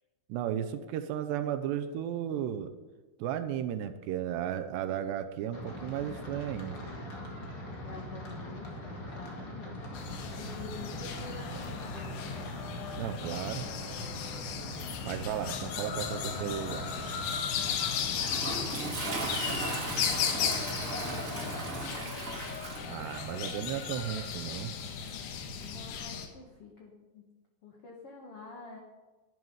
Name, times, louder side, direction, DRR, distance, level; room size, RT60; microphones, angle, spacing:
voice 1, 0.3-2.7 3.2-6.8 13.0-13.7 15.0-16.9 22.9-24.7, right 10 dB, 80° right, 9 dB, 2.7 m, -34 dB
sound 1, 5.5-22.0, equal, 40° left, 1.7 m, -41 dB
voice 2, 7.8-9.9 10.3-12.3 19.0-21.7 25.6-27.2 27.6-28.8, left 4 dB, 70° left, -1 dB, 1.4 m, -47 dB
sound 2, 10.0-26.3, left 7 dB, 90° left, 3.7 m, -36 dB
Toilet flush, 17.7-26.0, right 2 dB, 35° right, 1.2 m, -39 dB
12.5 x 10.5 x 5.5 m, 1.3 s
omnidirectional pair, 5.2 m